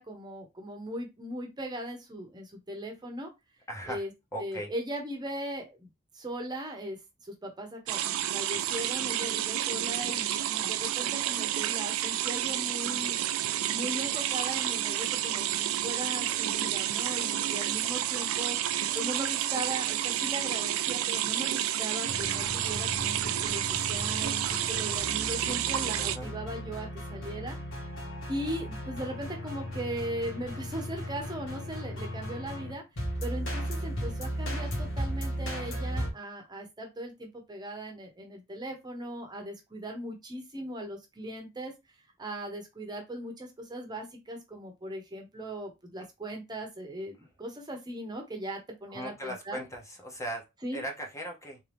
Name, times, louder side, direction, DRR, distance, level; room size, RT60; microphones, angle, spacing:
voice 1, 0.0-3.3 3.9-4.1 4.4-5.9 6.1-7.0 7.2-13.2 13.7-18.6 18.9-27.6 28.3-32.8 33.2-41.7 42.2-49.6 50.6-50.8, right 1 dB, 20° right, 2 dB, 0.8 m, -38 dB
voice 2, 3.7-4.0 4.3-4.7 26.0-26.3 48.9-50.5 50.7-51.6, right 1 dB, 15° left, 1 dB, 0.8 m, -38 dB
sound 1, 7.9-26.2, right 12 dB, 85° right, 0.4 m, -30 dB
sound 2, 22.0-36.1, equal, 65° left, 1.5 m, -36 dB
3.6 x 2.8 x 3.4 m, 0.22 s
head